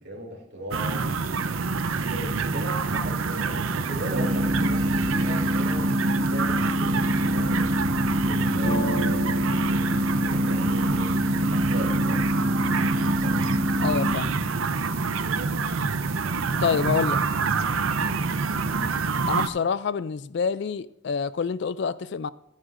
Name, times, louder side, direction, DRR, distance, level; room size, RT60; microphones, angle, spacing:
voice 1, 0.0-1.7 2.1-7.7 8.3-9.4 10.2-11.2 11.5-12.3 13.2-13.4, right 1 dB, 55° right, 3.1 m, -37 dB
sound 1, 0.7-19.5, right 4 dB, 80° right, 0.7 m, -27 dB
sound 2, 4.1-14.1, equal, 20° right, 1.0 m, -26 dB
sound 3, 8.6-12.5 13.0-13.6 13.9-14.6, right 1 dB, 75° left, 2.3 m, -36 dB
voice 2, 13.8-14.4 16.6-17.2 19.3-22.3, left 6 dB, 55° left, 0.3 m, -27 dB
14.0 x 11.5 x 2.6 m
head